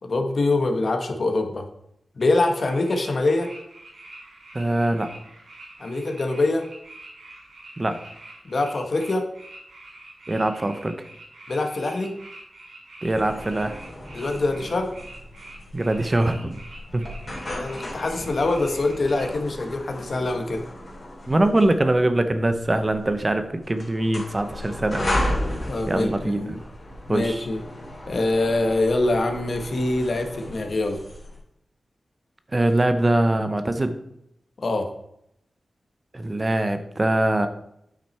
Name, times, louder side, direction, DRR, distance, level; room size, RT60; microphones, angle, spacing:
voice 1, 0.0-1.6 2.2-3.5 5.8-6.7 8.4-9.3 11.5-12.1 14.1-14.9 17.5-20.6 25.7-26.6 27.1-27.6 28.1-31.0 34.6-34.9, left 2 dB, 55° left, 4 dB, 1.2 m, -24 dB
sound 1, 2.2-19.3, right 2 dB, 85° right, 3.0 m, -45 dB
voice 2, 4.5-5.1 7.8-8.0 10.3-11.0 13.0-13.8 15.7-16.6 16.9-17.1 21.3-25.1 25.5-26.6 27.1-27.5 32.5-34.0 36.1-37.5, right 1 dB, 25° right, 9 dB, 0.7 m, -23 dB
sound 2, 13.0-31.4, left 1 dB, 35° left, 3.0 m, -35 dB
8.9 x 5.9 x 4.4 m, 0.76 s
wide cardioid pair, 125°, 0 cm